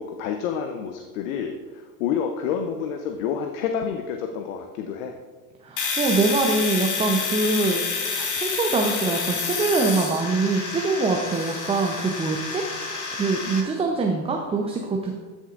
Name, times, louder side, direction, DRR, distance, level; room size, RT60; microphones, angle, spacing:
voice 1, 0.0-5.2, left 7 dB, 55° left, 5 dB, 0.8 m, -29 dB
voice 2, 5.6-15.2, right 3 dB, 10° right, 2 dB, 0.6 m, -24 dB
Domestic sounds home sounds, 5.8-13.6, left 5 dB, 40° left, 1.8 m, -29 dB
13.0 x 6.3 x 2.5 m, 1.4 s
hypercardioid pair, 90°, 48 cm